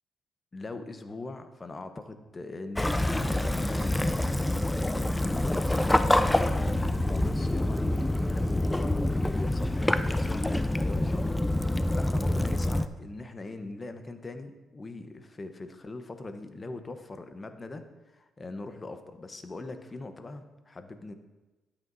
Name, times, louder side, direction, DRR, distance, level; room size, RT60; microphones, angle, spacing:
voice 1, 0.5-21.1, left 2 dB, 30° left, 8 dB, 0.9 m, -41 dB
Waves surf / Splash splatter / Trickle dribble, 2.8-12.9, left 1 dB, 10° left, 0.4 m, -26 dB
12.5 x 8.3 x 2.7 m, 1.1 s
cardioid pair, 90°, 0 cm